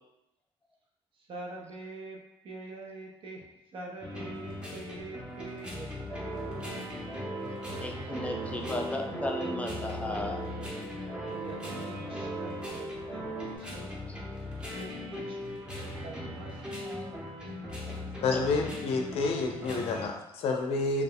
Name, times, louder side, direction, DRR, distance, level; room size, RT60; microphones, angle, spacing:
voice 1, 1.1-2.2 2.4-6.9 11.3-13.3 13.6-14.0 14.4-17.3, right 2 dB, 60° right, 0 dB, 0.6 m, -45 dB
sound 1, 4.0-20.1, left 1 dB, 10° right, 0.8 m, -39 dB
sound 2, 6.1-13.6, right 3 dB, 35° right, 1.0 m, -39 dB
voice 2, 7.8-10.4 18.3-18.4, left 1 dB, 15° left, 2 dB, 0.4 m, -35 dB
voice 3, 18.2-21.0, left 3 dB, 75° left, 3 dB, 0.4 m, -29 dB
2.4 x 2.1 x 3.5 m, 0.89 s
cardioid pair, 105°, 10 cm